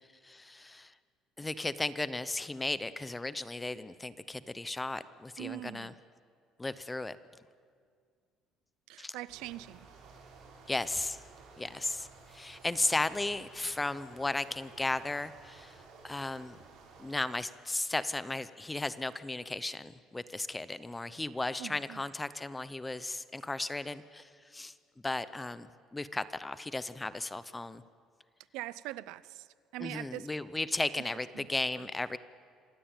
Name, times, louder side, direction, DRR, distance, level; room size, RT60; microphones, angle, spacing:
voice 1, 0.2-0.9 1.4-5.9 6.6-7.2 9.0-9.1 10.7-11.2 11.6-15.8 16.0-16.6 17.0-24.7 25.0-27.8 29.8-32.2, left 2 dB, 10° left, 15 dB, 0.6 m, -35 dB
voice 2, 5.4-5.9 8.9-9.9 21.6-22.0 28.5-30.3 31.3-31.9, right 16 dB, 85° right, 18 dB, 0.6 m, -43 dB
sound 1, 9.3-17.2, right 4 dB, 70° right, 6.2 m, -54 dB
26.5 x 16.0 x 9.0 m, 2.1 s
cardioid pair, 165°, 0 cm